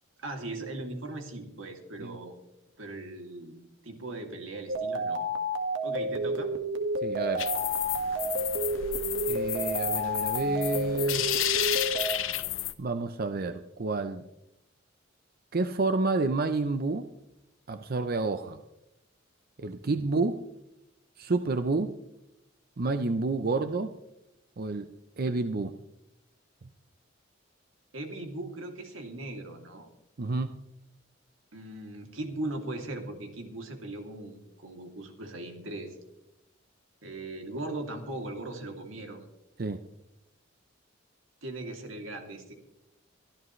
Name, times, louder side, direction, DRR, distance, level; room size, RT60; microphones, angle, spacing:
voice 1, 0.2-2.3 2.8-5.2 5.8-6.5 27.9-29.9 31.5-35.9 37.0-39.2 41.4-42.5, right 2 dB, 90° right, 3 dB, 2.7 m, -39 dB
sound 1, 4.7-12.2, right 1 dB, 70° right, 1.7 m, -30 dB
voice 2, 7.0-7.5 9.3-11.3 12.8-14.2 15.5-17.0 17.7-18.6 19.6-20.4 21.2-21.9 22.8-23.9 24.6-24.9 25.2-25.7 30.2-30.5 39.6-39.8, right 3 dB, 50° right, 9 dB, 0.6 m, -29 dB
sound 2, 7.4-12.7, left 13 dB, 90° left, 0.8 m, -32 dB
23.5 x 13.5 x 3.2 m, 0.87 s
head